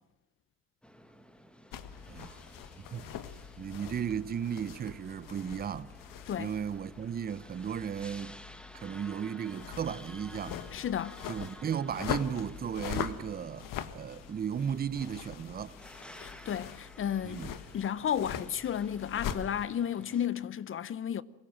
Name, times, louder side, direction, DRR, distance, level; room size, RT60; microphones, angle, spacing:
sound 1, 0.8-20.3, equal, 5° left, 1.4 m, -53 dB
sound 2, 1.7-19.7, left 9 dB, 55° left, 1.5 m, -42 dB
voice 1, 2.1-2.4 2.9-3.1 3.6-5.9 6.4-8.4 8.8-10.6 11.3-15.7 17.2-17.5, right 8 dB, 25° right, 0.7 m, -35 dB
voice 2, 10.7-11.2 16.2-17.4 17.7-21.2, left 9 dB, 35° left, 0.8 m, -33 dB
24.0 x 16.5 x 7.6 m
supercardioid pair, 105°, 39 cm